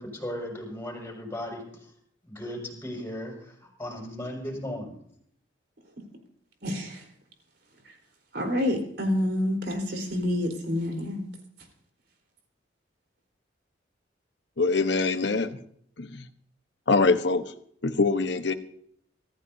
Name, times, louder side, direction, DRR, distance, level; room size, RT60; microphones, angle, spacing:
voice 1, 0.0-1.6 2.2-5.0, left 1 dB, 15° left, -1 dB, 6.4 m, -36 dB
voice 2, 6.6-7.0 8.3-11.2, left 1 dB, 60° right, 3 dB, 4.2 m, -28 dB
voice 3, 14.6-15.6 16.0-16.2 16.9-17.4 17.8-18.5, left 3 dB, 65° left, 9 dB, 1.1 m, -23 dB
26.0 x 14.5 x 2.8 m, 0.67 s
head